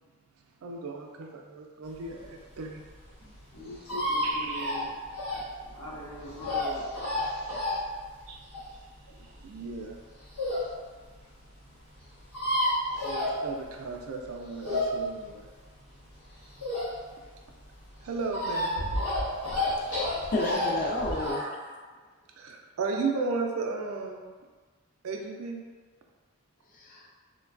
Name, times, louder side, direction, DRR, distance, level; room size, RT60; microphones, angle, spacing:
voice 1, 0.6-2.8 4.2-4.8 8.3-8.4 9.2-10.0 13.0-15.5 18.0-18.9 19.6-19.8 21.2-21.6 22.4-24.2 25.0-25.7, right 4 dB, 70° right, 2 dB, 0.4 m, -35 dB
sound 1, 2.1-10.7 11.2-11.3 11.5-11.6 11.7-11.8 12.0-13.9 14.2-17.2 17.6-21.3, left 1 dB, 85° left, 1.2 m, -31 dB
voice 2, 3.2-4.9 5.3-6.8, equal, 70° left, -6 dB, 0.8 m, -42 dB
voice 3, 19.4-19.8 20.3-21.7 26.7-27.1, left 1 dB, 35° left, -3 dB, 0.4 m, -32 dB
3.1 x 2.2 x 2.4 m, 1.4 s
head